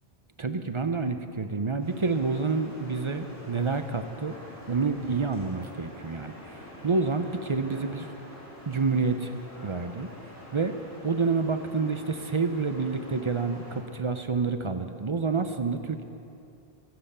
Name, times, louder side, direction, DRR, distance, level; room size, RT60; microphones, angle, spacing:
voice 1, 0.4-4.3 4.7-6.3 6.8-8.1 8.7-9.3 9.6-10.1 10.5-10.8 11.0-16.0, right 4 dB, 35° right, 8 dB, 0.6 m, -28 dB
sound 1, 1.8-13.8, left 1 dB, 15° left, 3.4 m, -46 dB
22.5 x 7.7 x 6.8 m, 2.7 s
omnidirectional pair, 1.1 m